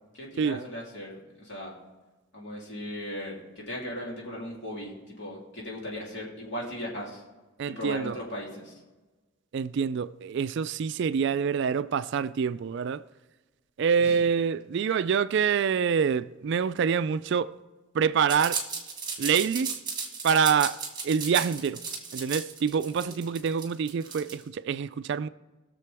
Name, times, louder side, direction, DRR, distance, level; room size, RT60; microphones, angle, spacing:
voice 1, 0.1-1.7 2.3-7.2 7.6-8.7 14.0-14.2 23.0-23.1, left 1 dB, 55° left, 3.2 m, -37 dB
voice 2, 7.6-8.2 9.5-13.0 13.8-17.5 17.9-18.6 19.2-19.8 20.2-20.8 21.0-21.8 22.1-25.3, right 6 dB, 55° right, 0.3 m, -26 dB
sound 1, 18.3-24.4, right 5 dB, 20° right, 1.6 m, -34 dB
20.0 x 6.8 x 3.5 m
head